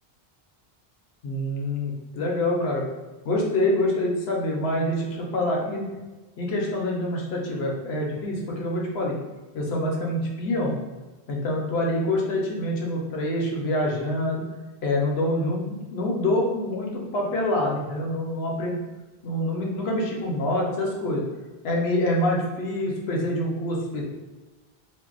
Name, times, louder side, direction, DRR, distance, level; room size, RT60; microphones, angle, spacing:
voice 1, 1.2-2.9 3.2-5.9 6.4-9.2 9.5-10.8 11.3-14.4 14.8-18.8 19.2-21.2 21.6-24.0, left 1 dB, 75° left, -1 dB, 0.9 m, -26 dB
2.6 x 2.0 x 3.8 m, 1.2 s
omnidirectional pair, 1.1 m